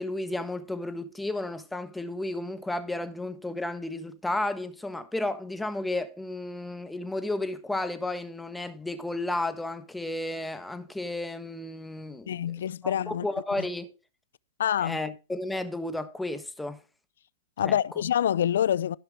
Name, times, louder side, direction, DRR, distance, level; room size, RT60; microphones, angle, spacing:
voice 1, 0.0-12.4 12.8-13.9 14.8-16.8 17.6-17.8, left 2 dB, 5° left, 1.2 m, -33 dB
voice 2, 12.3-13.3 13.6-13.7 14.6-15.0 17.6-19.0, left 10 dB, 70° left, 0.4 m, -26 dB
14.5 x 5.8 x 3.7 m
hypercardioid pair, 130°, 0 cm